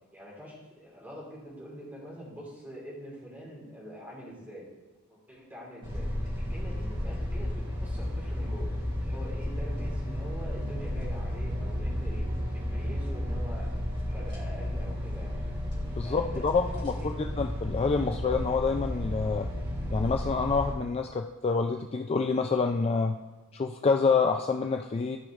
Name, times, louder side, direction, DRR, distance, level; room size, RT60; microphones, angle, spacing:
voice 1, 0.1-4.7 5.1-6.1 6.5-8.7 9.0-13.7 14.1-15.4 16.0-17.2, equal, 10° right, -6 dB, 2.9 m, -45 dB
sound 1, 5.8-20.7, left 1 dB, 25° right, 2.9 m, -33 dB
voice 2, 16.0-19.5 19.9-23.2 23.5-25.2, left 4 dB, 30° left, 4 dB, 0.3 m, -27 dB
14.0 x 5.0 x 3.1 m, 1.2 s
head